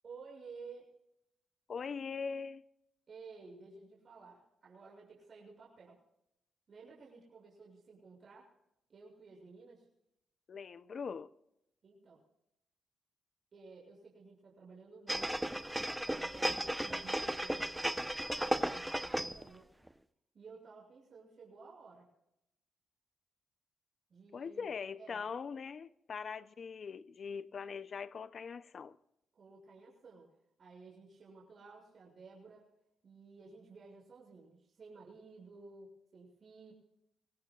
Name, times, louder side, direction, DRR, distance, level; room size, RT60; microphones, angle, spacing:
voice 1, 0.0-0.9 3.1-6.0 6.7-8.5 8.9-9.9 11.8-12.2 13.5-15.6 16.1-18.1 18.4-19.7 20.3-22.1 24.1-25.2 29.3-30.3 30.6-32.7 33.0-36.7, right 4 dB, 50° right, 6.8 m, -54 dB
voice 2, 1.7-2.6 10.5-11.3 24.3-29.0, left 5 dB, 50° left, 0.6 m, -41 dB
sound 1, 15.1-19.5 19.9-20.0, right 1 dB, 5° right, 0.8 m, -35 dB
25.0 x 18.0 x 2.4 m
cardioid pair, 90°, 0 cm